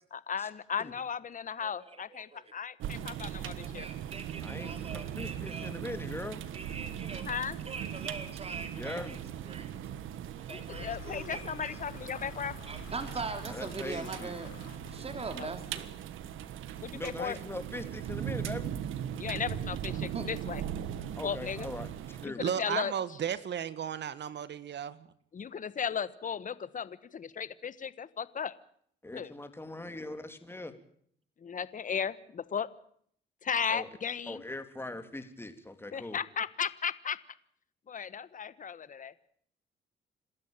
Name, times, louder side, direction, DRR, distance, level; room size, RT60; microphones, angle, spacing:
voice 1, 0.1-3.9 7.2-7.6 10.5-12.6 15.4-15.5 16.8-17.4 19.2-20.6 21.2-21.7 22.2-22.9 25.3-28.5 29.1-29.3 31.4-32.7 33.4-34.4 35.9-37.2 37.9-39.1, left 7 dB, 40° left, 16 dB, 1.3 m, -35 dB
voice 2, 1.6-2.4 3.8-5.7 6.5-7.2 7.6-9.2 9.5-9.7 10.5-11.7 12.7-14.5 14.9-15.8 20.1-20.3, right 4 dB, 30° right, 7 dB, 3.3 m, -41 dB
sound 1, 2.8-22.3, right 10 dB, 85° right, 1.6 m, -39 dB
voice 3, 4.4-6.4 8.8-9.2 13.4-14.3 16.9-18.7 21.2-22.4 29.0-30.7 33.7-33.9 34.3-36.2, left 2 dB, 10° left, 8 dB, 3.2 m, -41 dB
sound 2, 10.7-15.6, left 10 dB, 90° left, 3.5 m, -50 dB
voice 4, 22.4-25.1, right 9 dB, 60° right, 15 dB, 1.6 m, -34 dB
27.5 x 13.0 x 9.0 m, 0.64 s
cardioid pair, 90°, 20 cm